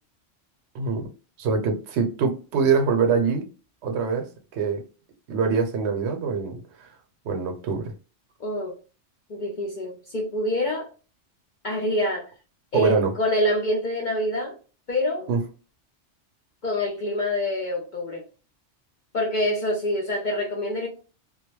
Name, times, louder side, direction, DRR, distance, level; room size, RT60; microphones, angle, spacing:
voice 1, 0.7-1.1 1.4-3.5 3.8-4.3 4.5-4.8 5.3-6.9 7.2-7.9 12.7-13.1 15.3-15.4, right 5 dB, 75° right, 0.9 m, -24 dB
voice 2, 8.4-8.7 9.3-10.9 11.6-12.3 12.7-14.6 14.9-15.3 16.6-18.2 19.1-20.9, left 1 dB, 55° left, 0.6 m, -26 dB
2.3 x 2.0 x 3.0 m
omnidirectional pair, 1.2 m